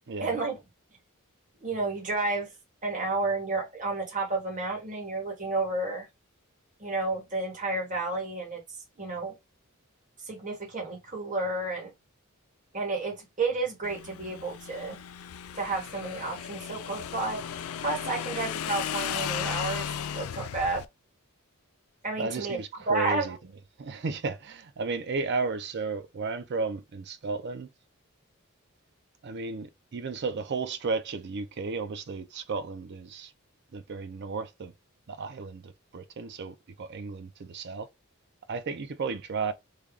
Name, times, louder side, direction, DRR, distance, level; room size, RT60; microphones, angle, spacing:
voice 1, 0.2-0.6 1.6-2.5 2.8-6.1 6.8-8.6 9.0-9.4 10.2-11.9 12.7-15.0 15.5-17.4 17.8-20.8 22.0-22.6 22.9-23.3, right 3 dB, 35° right, 1.3 m, -31 dB
Motorcycle / Engine, 13.8-20.9, left 9 dB, 85° left, 0.4 m, -35 dB
voice 2, 22.2-23.4 23.8-27.7 29.2-33.3 33.7-34.7 35.1-37.9 38.5-39.5, right 4 dB, 55° right, 0.5 m, -33 dB
3.3 x 2.3 x 3.6 m
head